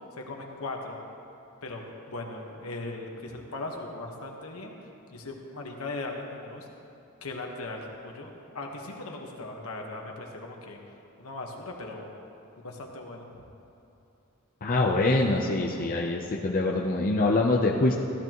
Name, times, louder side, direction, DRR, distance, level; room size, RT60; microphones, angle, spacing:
voice 1, 0.1-1.0 1.6-4.7 5.1-6.7 7.2-10.8 11.2-12.1 12.6-13.4, left 2 dB, 75° left, 1 dB, 1.4 m, -38 dB
voice 2, 14.6-17.9, left 2 dB, 40° left, -1 dB, 0.6 m, -24 dB
14.5 x 12.5 x 3.0 m, 2.8 s
head